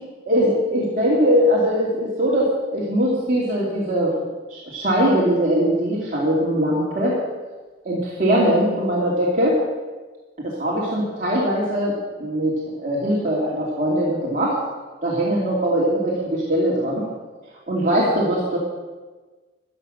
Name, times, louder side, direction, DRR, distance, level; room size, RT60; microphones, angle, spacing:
voice 1, 0.3-4.1 4.5-7.2 7.8-9.6 10.4-11.9 12.2-14.6 15.0-17.0 17.7-18.6, equal, 40° right, -7 dB, 2.9 m, -21 dB
14.5 x 10.5 x 6.6 m, 1.3 s
head